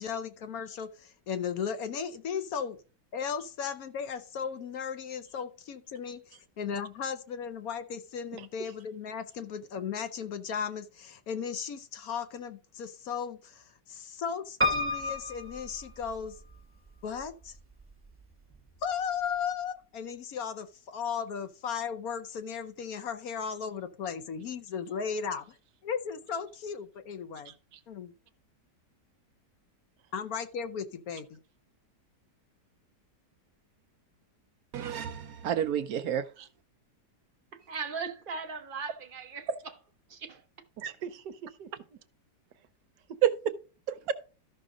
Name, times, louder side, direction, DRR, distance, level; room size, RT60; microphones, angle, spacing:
voice 1, 0.0-2.8 3.1-6.2 6.6-16.4 17.0-17.5 18.8-25.6 25.8-27.5 27.9-28.1 30.1-31.4, left 7 dB, 65° left, 1.1 m, -36 dB
voice 2, 8.3-8.7 27.4-27.8 36.4-36.5 40.8-42.0 43.1-43.2, right 7 dB, 80° right, 1.4 m, -44 dB
Piano, 14.6-16.6 17.2-17.9 18.2-18.3 18.5-18.6, left 1 dB, 10° right, 0.9 m, -31 dB
voice 3, 34.7-36.2 40.8-40.9 43.2-43.3 43.9-44.1, right 10 dB, 65° right, 1.0 m, -29 dB
voice 4, 37.7-39.5 40.1-40.4, right 5 dB, 40° right, 0.9 m, -38 dB
13.0 x 6.1 x 3.8 m
omnidirectional pair, 1.8 m